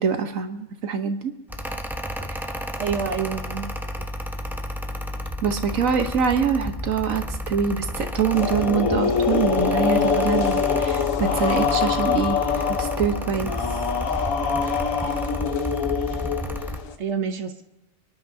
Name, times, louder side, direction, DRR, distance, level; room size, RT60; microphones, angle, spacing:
voice 1, 0.0-1.3 2.2-2.4 5.4-12.4 12.7-13.5, right 6 dB, 80° right, 7 dB, 1.4 m, -24 dB
Mechanical fan, 1.5-16.8, left 1 dB, ahead, 0.6 m, -32 dB
voice 2, 2.8-4.1 17.0-17.6, right 6 dB, 60° right, 7 dB, 1.1 m, -28 dB
sound 1, 8.3-16.9, left 6 dB, 80° left, 1.3 m, -24 dB
29.5 x 10.5 x 2.7 m, 1.0 s
omnidirectional pair, 1.4 m